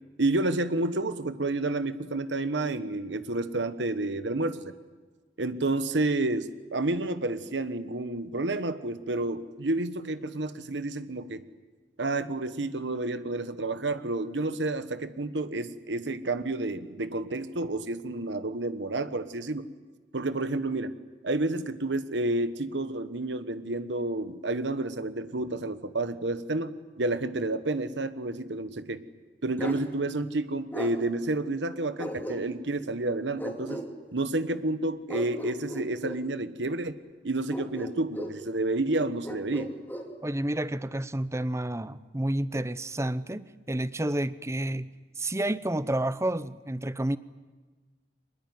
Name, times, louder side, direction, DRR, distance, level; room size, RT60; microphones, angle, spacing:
voice 1, 0.2-4.7 5.4-11.4 12.0-19.7 20.1-20.9 21.2-26.7 27.0-29.0 29.4-33.8 34.1-37.0 37.2-39.7, right 2 dB, 85° right, 1.2 m, -30 dB
Bark, 29.6-29.8 30.7-30.9 32.0-32.7 33.4-33.9 35.1-36.2 37.5-38.4 39.2-40.1, equal, 10° left, 3.1 m, -36 dB
voice 2, 40.2-44.9 45.2-47.2, right 1 dB, 15° right, 0.8 m, -30 dB
24.5 x 20.5 x 9.5 m
head